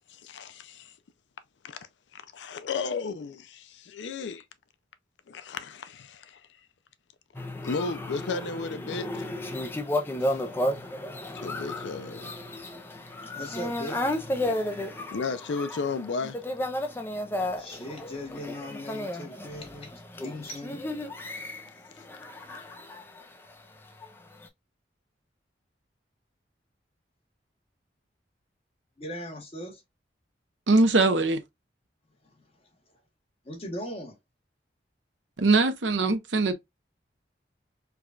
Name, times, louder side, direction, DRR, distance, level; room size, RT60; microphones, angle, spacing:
voice 1, 0.1-0.9 1.6-1.8 2.1-4.4 5.3-6.5 7.6-9.3 10.2-10.4 11.3-12.6 15.1-16.4, left 4 dB, 80° left, 0.4 m, -34 dB
sound 1, 7.3-23.5 24.0-24.5, left 1 dB, 10° left, 0.4 m, -33 dB
voice 2, 13.1-15.0 17.6-20.8 29.0-29.8 32.2-32.3 33.4-34.2, left 1 dB, 30° left, 1.1 m, -39 dB
voice 3, 30.7-31.4 35.4-36.5, right 3 dB, 85° right, 0.7 m, -21 dB
4.7 x 2.3 x 2.4 m
head